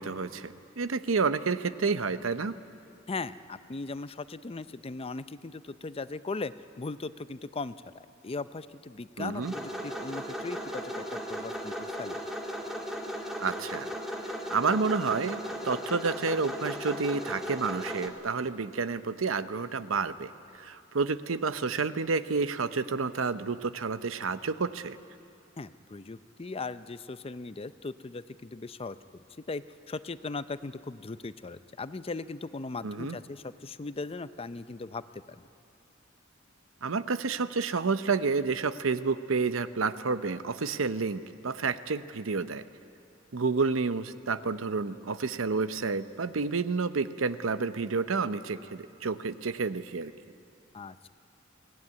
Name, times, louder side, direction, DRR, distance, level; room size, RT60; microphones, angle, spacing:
voice 1, 0.0-2.5 9.2-9.5 13.4-13.9 14.5-25.0 32.8-33.2 36.8-42.6 43.3-50.1, right 4 dB, 85° right, 13 dB, 0.8 m, -30 dB
voice 2, 3.1-11.7 12.0-12.2 25.6-29.0 29.5-35.0 35.4-35.5 50.7-51.1, left 3 dB, 30° left, 13 dB, 0.5 m, -38 dB
sound 1, 9.4-18.1, equal, ahead, 2.1 m, -36 dB
23.0 x 17.5 x 9.6 m, 2.7 s
head